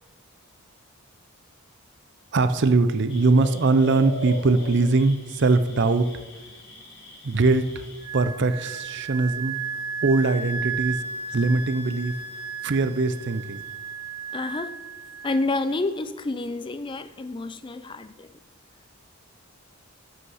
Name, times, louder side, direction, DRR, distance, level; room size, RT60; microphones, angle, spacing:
voice 1, 2.3-6.1 7.2-7.8 8.1-9.6 10.0-11.0 11.3-12.2 12.6-13.6, right 3 dB, 50° right, 0.5 m, -21 dB
sound 1, 3.1-8.1, left 1 dB, 55° left, 1.9 m, -40 dB
Wind instrument woodwind instrument, 8.0-15.5, right 5 dB, 80° right, 0.8 m, -34 dB
voice 2, 14.3-14.8 15.2-18.3, left 2 dB, 20° left, 0.4 m, -29 dB
12.5 x 5.6 x 5.6 m
head